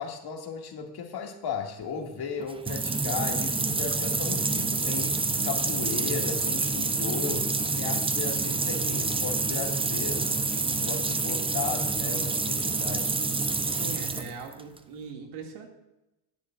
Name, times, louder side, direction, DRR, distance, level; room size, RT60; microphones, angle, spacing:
voice 1, 0.0-5.1 5.4-7.5 7.8-10.4 10.9-13.2, left 6 dB, 50° left, 2 dB, 2.1 m, -35 dB
sound 1, 2.4-14.8, right 3 dB, 10° right, 0.5 m, -28 dB
voice 2, 13.7-15.7, right 5 dB, 80° right, 2 dB, 2.3 m, -41 dB
16.5 x 10.0 x 2.4 m, 0.95 s
cardioid pair, 105°, 48 cm